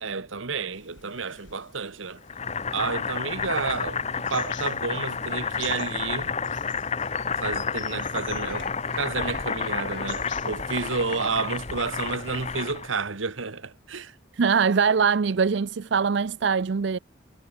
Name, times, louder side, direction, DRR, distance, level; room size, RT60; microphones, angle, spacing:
voice 1, 0.0-2.2 2.7-4.0 4.3-6.3 7.4-8.7 9.0-14.1, right 4 dB, 80° right, 1.4 m, -30 dB
sound 1, 0.7-12.7, left 4 dB, 70° left, 6.9 m, -48 dB
sound 2, 1.1-11.6, left 6 dB, 55° left, 5.8 m, -55 dB
Boiling, 2.3-12.9, left 5 dB, 35° left, 1.3 m, -30 dB
voice 2, 14.3-17.0, right 5 dB, 60° right, 0.5 m, -22 dB
head